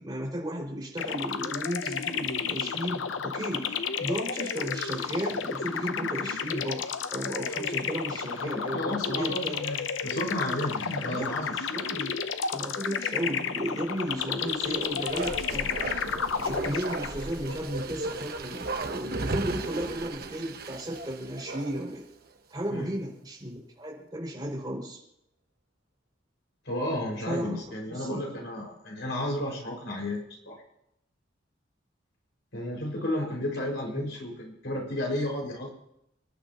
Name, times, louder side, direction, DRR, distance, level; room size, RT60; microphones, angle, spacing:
voice 1, 0.0-6.8 7.1-9.7 10.6-15.8 16.4-22.0 22.5-25.0 27.3-27.6 27.9-28.2 33.6-33.7 33.9-34.0, equal, 20° right, -2 dB, 5.6 m, -34 dB
sound 1, 1.0-17.4, left 6 dB, 85° left, 0.7 m, -32 dB
voice 2, 8.4-11.9 22.7-22.9 26.6-30.6 32.5-35.7, left 1 dB, 70° left, -2 dB, 5.5 m, -33 dB
Bark, 14.4-22.0 22.3-22.4, right 3 dB, 55° right, 1.1 m, -36 dB
30.0 x 11.5 x 3.0 m, 0.78 s
head